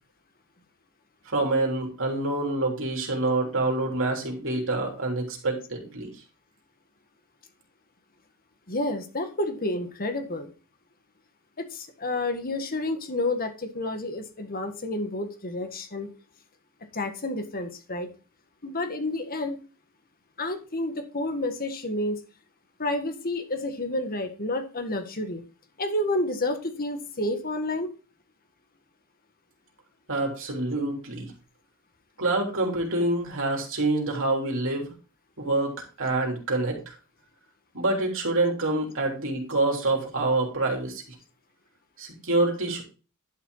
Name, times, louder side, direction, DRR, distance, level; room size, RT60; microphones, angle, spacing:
voice 1, 1.3-6.1 30.1-31.3 32.2-34.9 35.4-36.9 37.7-41.0 42.0-42.8, right 2 dB, 65° right, 1 dB, 3.4 m, -26 dB
voice 2, 8.7-10.5 11.6-16.1 16.9-18.1 18.6-19.6 20.4-22.2 22.8-25.4 25.8-27.9, left 1 dB, 40° left, 7 dB, 1.6 m, -30 dB
11.0 x 6.0 x 4.0 m, 0.33 s
head